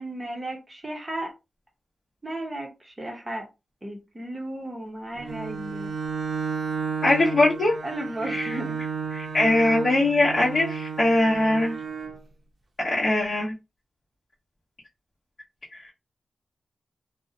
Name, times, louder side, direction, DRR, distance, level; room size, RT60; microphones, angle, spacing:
voice 1, 0.0-1.3 2.2-3.5 3.8-5.9 7.8-8.8, right 1 dB, 20° right, 0.7 m, -34 dB
Bowed string instrument, 5.2-12.2, right 6 dB, 70° right, 0.6 m, -32 dB
voice 2, 7.0-7.7 8.3-8.6 9.1-11.8 12.8-13.5 15.7-15.8, left 2 dB, 45° left, 0.7 m, -21 dB
2.6 x 2.0 x 2.6 m
wide cardioid pair, 140°, 0 cm